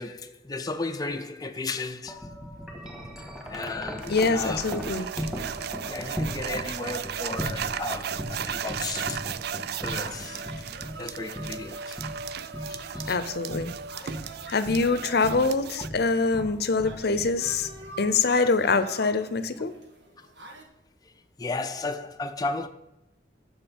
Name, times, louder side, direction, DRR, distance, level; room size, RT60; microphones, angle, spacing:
voice 1, 0.0-2.3 3.5-4.8 5.8-9.2 9.7-10.4 11.0-12.0 12.7-13.2 14.0-14.1 16.3-16.5 20.2-20.3 21.4-22.7, left 3 dB, 20° left, 0.5 m, -34 dB
Wind chime, 2.1-18.3, equal, ahead, 1.7 m, -38 dB
sound 1, 4.0-15.9, right 8 dB, 60° right, 0.4 m, -36 dB
voice 2, 4.1-5.1 13.1-13.7 14.5-17.7 18.0-19.7, left 4 dB, 60° left, 0.7 m, -24 dB
sound 2, 7.8-20.6, right 3 dB, 80° right, 1.6 m, -47 dB
7.1 x 6.6 x 7.2 m
head